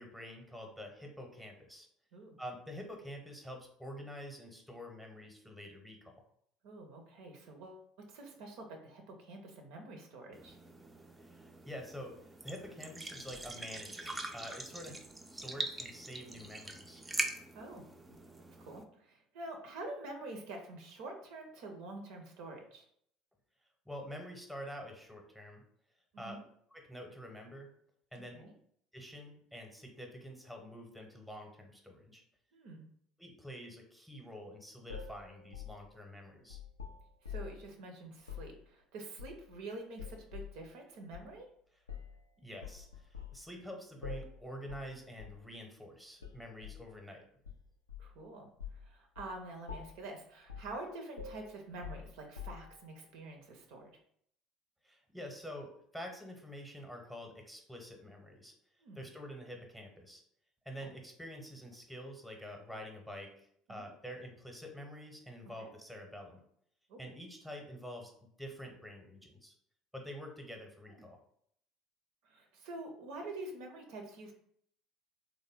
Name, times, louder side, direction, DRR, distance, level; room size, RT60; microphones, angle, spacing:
voice 1, 0.0-1.9 2.4-6.1 11.2-12.1 12.4-14.9 15.2-17.0 23.9-25.6 26.2-26.4 26.7-27.7 28.1-28.3 28.9-32.2 33.2-36.6 42.4-47.2 54.8-58.5 58.9-60.2 60.6-66.4 67.0-69.5 69.9-71.2, equal, ahead, 2 dB, 0.8 m, -47 dB
voice 2, 6.6-10.6 14.8-14.9 17.5-17.8 18.1-18.2 18.6-22.8 26.1-26.4 28.3-28.5 32.5-32.9 37.2-41.5 48.0-53.9 58.8-59.0 60.8-60.9 63.7-63.9 65.6-65.7 66.9-67.1 72.2-74.3, right 2 dB, 60° right, 3 dB, 0.6 m, -47 dB
sound 1, 10.3-18.8, right 2 dB, 15° right, 0.4 m, -43 dB
sound 2, 34.9-37.7 38.2-38.5 39.2-39.6 40.0-40.6 41.1-41.3 41.9-42.2 42.6-43.4 44.0-44.4 44.7-44.9 45.2-45.4 46.2-46.8 47.4-48.2 48.6-48.9 49.2-49.4 49.7-50.1 50.5-50.8 51.2-52.8, left 7 dB, 85° left, 0.4 m, -46 dB
3.3 x 2.1 x 3.5 m, 0.67 s
figure-of-eight pair, 65°, 0 cm